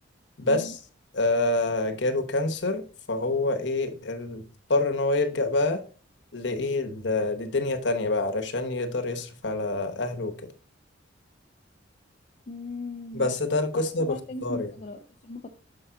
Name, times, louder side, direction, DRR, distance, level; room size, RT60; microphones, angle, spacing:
voice 1, 0.4-0.8 1.1-4.4 4.7-5.8 6.3-10.3 13.1-14.2 14.4-14.7, left 2 dB, 65° left, 1.0 m, -26 dB
voice 2, 12.5-13.3 13.7-15.5, left 2 dB, 35° left, 0.5 m, -38 dB
7.0 x 5.3 x 3.7 m
head